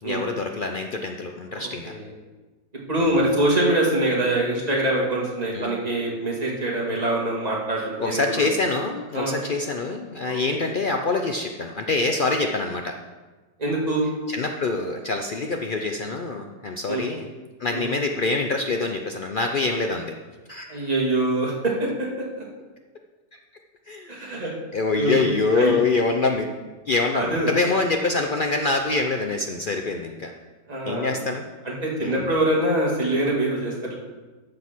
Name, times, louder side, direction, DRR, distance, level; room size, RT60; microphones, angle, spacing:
voice 1, 0.0-1.9 3.0-3.2 5.5-5.7 8.0-12.9 14.3-17.3 17.6-20.1 20.5-20.9 23.9-24.4 24.7-26.5 26.9-30.3 30.9-31.5 32.0-32.3, left 3 dB, 90° left, 3 dB, 0.4 m, -25 dB
voice 2, 1.5-2.0 2.9-8.4 9.1-9.4 10.3-10.6 13.6-14.1 16.9-17.1 17.7-17.9 20.7-22.1 22.4-22.5 24.1-24.5 25.0-25.2 25.5-25.8 27.1-27.5 30.7-31.2 31.6-33.9, right 1 dB, 25° right, -4 dB, 2.4 m, -24 dB
14.0 x 5.2 x 6.1 m, 1.2 s
omnidirectional pair, 1.8 m